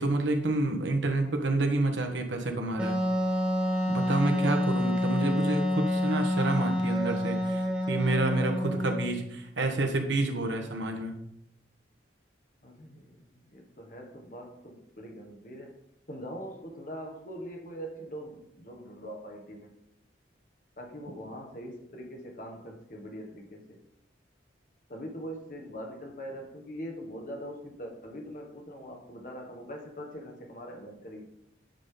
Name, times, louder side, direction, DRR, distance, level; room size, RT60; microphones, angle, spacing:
voice 1, 0.0-3.0 3.9-11.1, right 2 dB, 75° right, 4 dB, 1.2 m, -29 dB
Wind instrument woodwind instrument, 2.8-9.2, left 1 dB, 5° right, 1.2 m, -28 dB
voice 2, 12.6-15.8 16.1-19.7 20.8-23.8 24.9-31.3, equal, 45° left, 1 dB, 1.4 m, -42 dB
8.9 x 5.2 x 3.8 m, 0.77 s
head